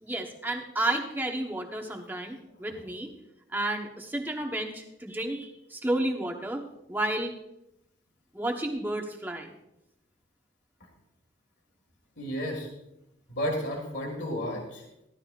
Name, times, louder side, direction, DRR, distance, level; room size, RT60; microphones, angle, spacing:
voice 1, 0.0-3.1 3.5-7.3 8.3-9.5, right 1 dB, 10° right, 2 dB, 1.1 m, -31 dB
voice 2, 12.2-12.7 13.3-14.8, equal, 60° left, 1 dB, 1.9 m, -32 dB
14.5 x 12.0 x 2.5 m, 0.85 s
head